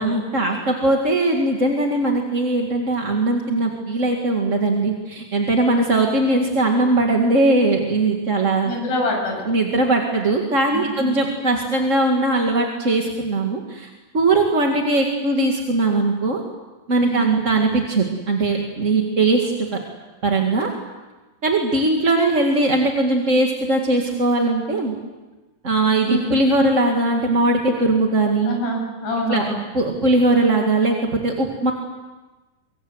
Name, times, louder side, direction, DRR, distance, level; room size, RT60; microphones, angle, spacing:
voice 1, 0.0-8.7 9.4-16.4 16.9-19.7 20.2-20.7 21.4-24.9 25.6-28.5 29.3-29.4 29.7-31.7, right 2 dB, 30° right, 1 dB, 1.6 m, -20 dB
voice 2, 8.6-9.5 10.7-11.1 17.0-17.3 26.0-26.3 28.4-29.6, equal, 50° left, 0 dB, 8.5 m, -25 dB
24.0 x 24.0 x 8.0 m, 1.2 s
omnidirectional pair, 4.2 m